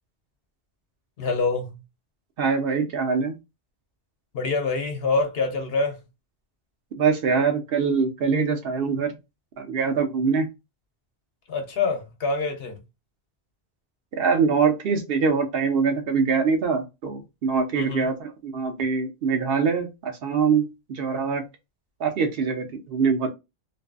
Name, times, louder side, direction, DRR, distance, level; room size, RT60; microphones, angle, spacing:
voice 1, 1.2-1.8 4.3-6.0 11.5-12.8 17.7-18.1, left 3 dB, 70° left, 0.9 m, -26 dB
voice 2, 2.4-3.4 7.0-9.1 9.6-10.5 14.2-21.4 22.0-23.3, right 5 dB, 70° right, 0.8 m, -23 dB
2.5 x 2.3 x 2.3 m
omnidirectional pair, 1.1 m